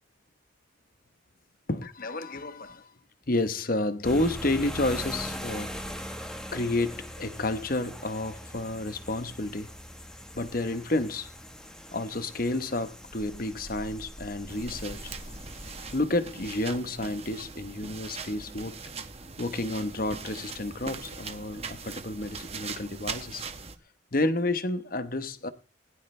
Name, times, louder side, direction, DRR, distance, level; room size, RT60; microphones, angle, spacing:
voice 1, 1.7-2.9 3.3-5.8 6.5-9.7 10.3-11.3 11.9-15.1 15.9-18.7 19.4-23.4 24.1-25.5, left 2 dB, 45° left, 1.0 m, -30 dB
sound 1, 4.0-16.0, equal, 5° left, 1.2 m, -41 dB
sound 2, 14.5-23.8, right 5 dB, 30° right, 1.1 m, -41 dB
20.5 x 11.0 x 3.3 m
head